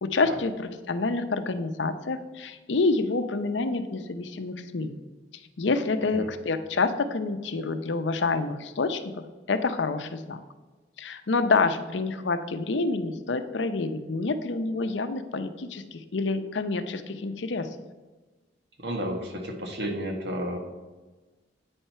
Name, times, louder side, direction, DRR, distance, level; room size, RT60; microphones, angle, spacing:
voice 1, 0.0-5.0 5.6-10.4 11.0-17.7, left 3 dB, 80° left, 10 dB, 0.6 m, -28 dB
voice 2, 18.8-20.6, equal, 65° right, 3 dB, 1.4 m, -32 dB
9.1 x 4.5 x 5.6 m, 1.2 s
head